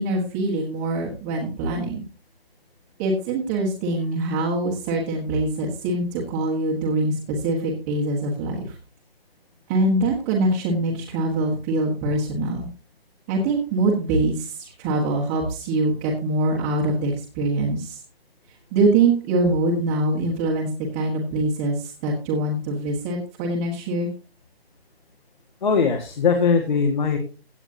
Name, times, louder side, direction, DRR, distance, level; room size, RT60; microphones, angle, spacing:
voice 1, 0.0-2.0 3.0-8.7 9.7-12.7 13.3-18.0 18.7-24.1, right 2 dB, 10° right, -5 dB, 1.4 m, -24 dB
voice 2, 25.6-27.2, left 5 dB, 45° left, 3 dB, 2.0 m, -20 dB
16.5 x 9.1 x 2.8 m, 0.35 s
hypercardioid pair, 165°, 31 cm